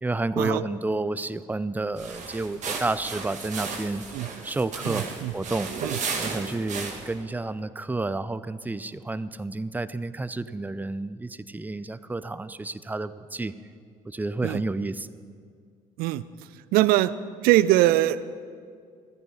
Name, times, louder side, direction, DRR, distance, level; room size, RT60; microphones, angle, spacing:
voice 1, 0.0-4.0 4.4-5.7 6.2-13.5 14.1-15.1, right 2 dB, 10° right, 15 dB, 0.6 m, -30 dB
sound 1, 1.9-7.2, right 5 dB, 45° right, 2.1 m, -34 dB
voice 2, 4.9-5.3 5.8-6.0 14.4-14.6 16.0-16.2 16.7-17.1 17.4-18.3, right 15 dB, 60° right, 16 dB, 0.6 m, -22 dB
16.0 x 14.0 x 5.4 m, 2.2 s
figure-of-eight pair, 55°, 18 cm